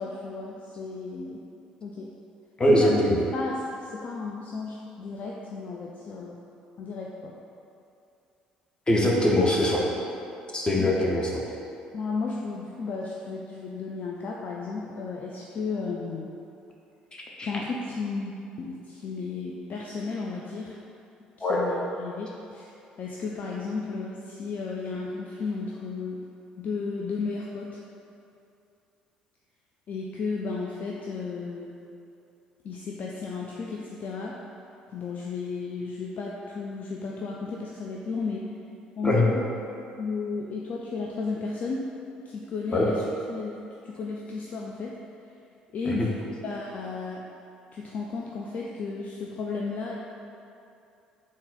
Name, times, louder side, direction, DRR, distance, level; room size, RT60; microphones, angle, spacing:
voice 1, 0.0-1.4 1.8-2.1 2.7-6.4 6.8-7.3 10.8-11.1 11.9-16.3 17.4-18.3 18.6-20.8 21.4-26.2 26.6-27.8 29.9-31.8 32.6-34.4 34.9-38.4 39.0-39.4 40.0-41.9 42.3-43.6 43.8-45.0 45.7-47.3 47.7-50.0, left 4 dB, 40° left, -2 dB, 0.3 m, -34 dB
voice 2, 2.6-3.1 8.9-9.8 10.5-11.4 17.4-17.5 21.4-21.6 39.0-39.3 42.7-42.9 45.9-46.1, left 1 dB, 20° left, -3 dB, 0.7 m, -22 dB
3.9 x 2.5 x 3.7 m, 2.7 s
figure-of-eight pair, 55°, 4 cm